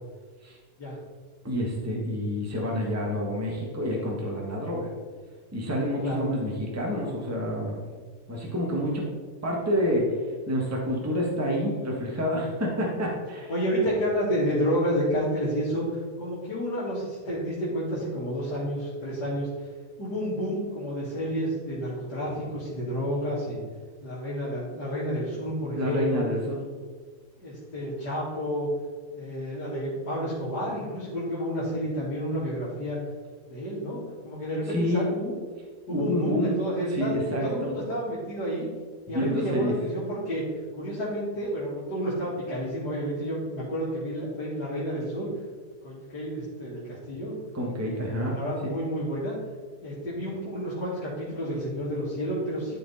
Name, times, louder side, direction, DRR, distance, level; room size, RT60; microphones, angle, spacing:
voice 1, 1.4-4.9 5.5-7.9 8.3-9.0 9.4-10.0 10.5-13.5 25.7-26.6 34.7-35.0 35.9-36.5 36.9-37.4 39.1-39.7 47.5-48.4 48.6-48.7, equal, 10° right, -2 dB, 1.4 m, -28 dB
voice 2, 13.5-19.5 20.0-23.6 24.0-26.2 27.4-28.7 29.1-33.0 33.5-35.3 35.9-38.7 39.1-40.4 40.8-45.3 45.8-47.3 48.1-49.3 49.8-52.8, equal, 85° left, -10 dB, 2.7 m, -30 dB
12.0 x 4.7 x 4.2 m, 1.5 s
omnidirectional pair, 1.8 m